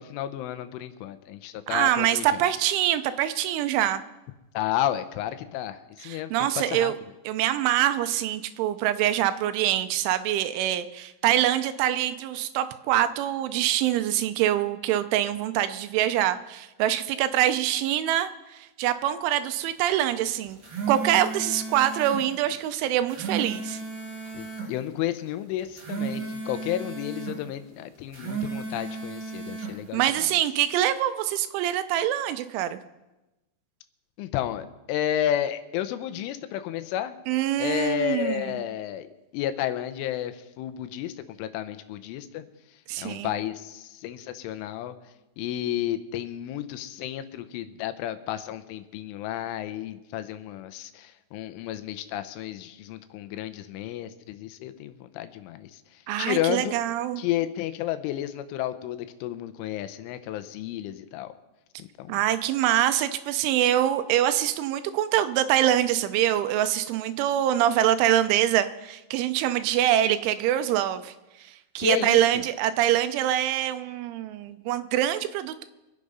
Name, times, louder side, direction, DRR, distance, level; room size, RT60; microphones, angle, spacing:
voice 1, 0.0-2.4 4.5-6.9 24.3-30.3 34.2-37.2 37.6-39.1 39.3-42.4 43.0-45.0 45.4-55.8 56.2-56.8 57.2-61.3 61.8-62.2 71.8-72.4, left 12 dB, 80° left, 11 dB, 3.2 m, -32 dB
voice 2, 1.7-4.0 6.0-7.0 7.3-20.6 20.9-23.8 29.9-32.8 37.3-38.6 42.9-43.3 56.1-57.2 62.1-71.1 71.8-75.6, right 12 dB, 80° right, 11 dB, 3.0 m, -24 dB
sound 1, 20.4-22.2 22.9-24.7 25.6-27.4 28.0-29.7, right 5 dB, 40° right, 1.8 m, -34 dB
24.5 x 8.4 x 5.4 m, 1.0 s
omnidirectional pair, 5.6 m